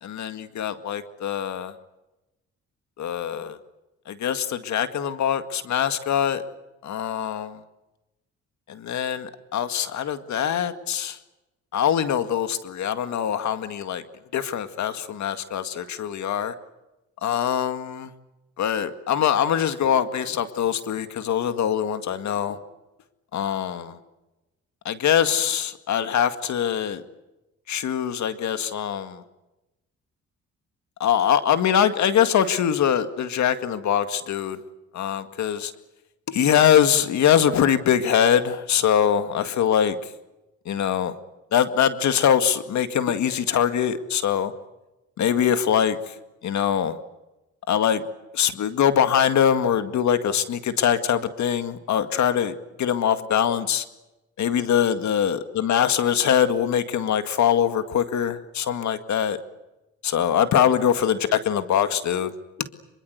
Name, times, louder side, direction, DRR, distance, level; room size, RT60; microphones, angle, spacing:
voice 1, 0.0-1.7 3.0-3.6 4.1-6.4 6.8-7.6 8.7-11.2 11.7-14.0 14.3-16.5 17.2-18.1 18.6-22.6 23.3-24.0 24.9-27.0 27.7-29.2 31.0-34.6 34.9-35.7 36.3-40.0 40.7-41.1 41.5-44.5 45.2-46.1 46.4-47.0 47.7-48.0 48.3-53.8 54.4-59.4 60.0-62.3 62.6-62.7, left 9 dB, 65° left, 10 dB, 2.0 m, -23 dB
25.5 x 24.0 x 8.1 m, 0.99 s
cardioid pair, 90°, 30 cm